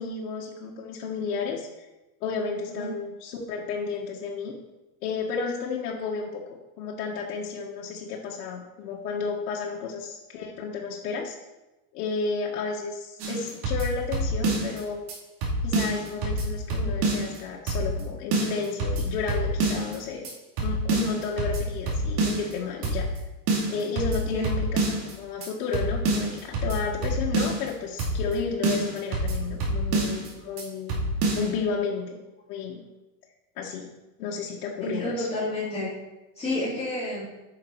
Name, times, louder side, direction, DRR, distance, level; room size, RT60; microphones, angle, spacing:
voice 1, 0.0-1.9 2.2-4.5 5.0-6.4 6.8-11.3 11.9-15.0 15.6-20.3 20.6-23.1 23.7-31.0 31.3-32.2 32.5-32.8 33.6-33.9 34.2-35.3, left 5 dB, 85° left, -3 dB, 1.6 m, -32 dB
sound 1, 13.2-14.8 15.1-15.2 15.4-17.4 17.7-18.0 18.3-20.0 20.2-20.3 20.6-22.5 22.8-23.2 23.5-25.1 25.4-25.5 25.7-27.7 28.0-28.4 28.6-30.3 30.6-30.7 30.9-31.5, right 2 dB, 55° right, 3.0 m, -27 dB
voice 2, 24.1-24.4 31.7-31.8 34.8-35.9 36.4-37.2, left 1 dB, 15° left, -9 dB, 3.4 m, -30 dB
9.7 x 6.1 x 4.7 m, 1.0 s
supercardioid pair, 150°, 47 cm